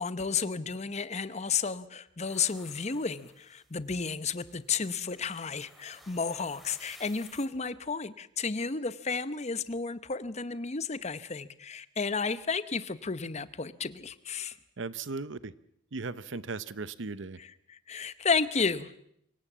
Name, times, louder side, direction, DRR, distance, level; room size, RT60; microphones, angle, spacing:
voice 1, 0.0-14.6 17.4-18.9, left 5 dB, 35° left, 15 dB, 0.8 m, -32 dB
sound 1, 2.3-3.7 4.2-7.5, equal, ahead, 3.0 m, -56 dB
voice 2, 14.8-15.5 15.9-17.4, right 4 dB, 75° right, 16 dB, 0.9 m, -37 dB
25.5 x 17.0 x 7.3 m, 0.73 s
head